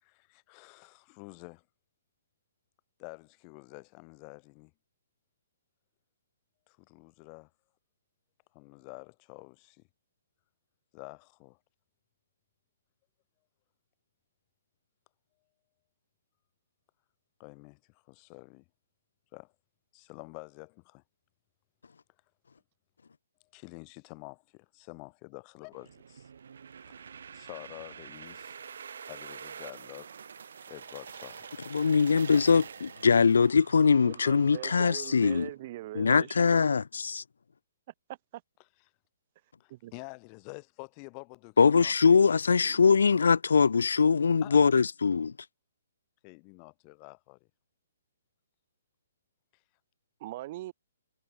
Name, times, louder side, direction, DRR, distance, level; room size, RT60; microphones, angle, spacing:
voice 1, 0.0-1.6 3.0-4.7 6.7-7.5 8.5-9.8 10.9-11.6 17.4-18.6 19.3-19.5 19.9-21.0 23.5-26.3 26.9-27.1 27.3-28.6 29.0-30.1 30.7-31.5 32.3-32.4 39.6-42.2 42.6-43.3 44.4-44.7 46.2-47.5, left 40 dB or more, 30° left, 2.7 m, -48 dB
sound 1, 25.7-35.5, right 7 dB, 70° right, 1.5 m, -46 dB
voice 2, 31.7-35.5 35.9-37.2 41.6-45.3, left 5 dB, 85° left, 0.5 m, -22 dB
voice 3, 34.1-36.4 38.3-38.4 39.7-39.9 50.2-50.7, right 16 dB, 40° right, 2.2 m, -41 dB
hypercardioid pair, 150°, 0 cm